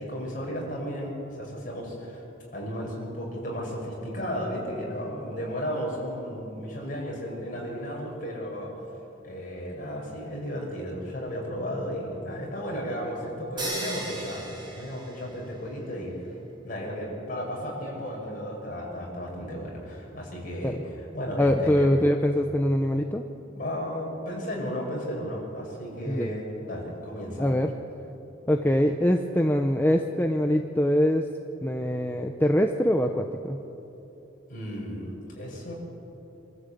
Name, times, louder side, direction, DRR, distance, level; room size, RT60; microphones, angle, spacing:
voice 1, 0.0-2.2 2.5-8.7 9.2-16.4 16.6-21.9 23.5-27.5 34.5-35.7, equal, 45° left, -2 dB, 6.0 m, -34 dB
sound 1, 13.6-15.7, right 1 dB, 25° right, 4.4 m, -36 dB
voice 2, 21.4-23.2 26.1-26.3 27.4-27.7 28.5-31.3 31.6-33.6, equal, 10° left, 4 dB, 0.7 m, -23 dB
26.0 x 13.5 x 8.5 m, 2.9 s
head